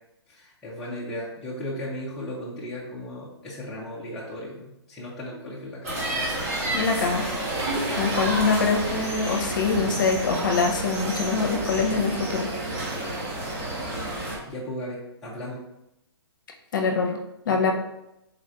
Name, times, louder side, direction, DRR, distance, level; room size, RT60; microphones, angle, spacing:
voice 1, 0.3-6.0 7.9-8.1 12.8-13.1 14.1-15.6 17.5-17.7, left 1 dB, 5° left, -9 dB, 0.4 m, -36 dB
sound 1, 5.8-14.4, right 1 dB, 35° right, 1.3 m, -30 dB
voice 2, 6.7-7.3 8.0-12.5 16.7-17.2 17.5-17.7, left 4 dB, 50° left, 2 dB, 0.7 m, -24 dB
Mechanisms, 7.5-12.6, right 1 dB, 90° right, 1.1 m, -38 dB
4.0 x 2.5 x 4.4 m, 0.87 s
hypercardioid pair, 170°, 14 cm